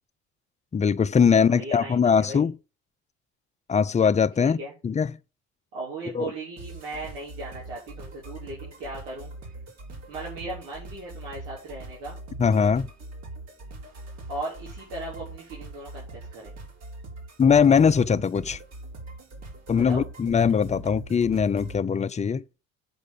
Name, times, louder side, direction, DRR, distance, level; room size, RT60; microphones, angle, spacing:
voice 1, 0.7-2.5 3.7-4.6 4.8-5.1 6.1-6.3 12.4-12.9 17.4-18.6 19.7-22.4, left 6 dB, 25° left, 0.6 m, -21 dB
voice 2, 1.3-2.5 4.4-4.7 5.7-9.3 10.1-12.2 14.3-16.5 19.7-20.1, right 2 dB, 90° right, 3.7 m, -37 dB
sound 1, 6.6-21.8, right 2 dB, 60° right, 3.6 m, -42 dB
7.7 x 5.2 x 6.9 m
supercardioid pair, 80°, 30 cm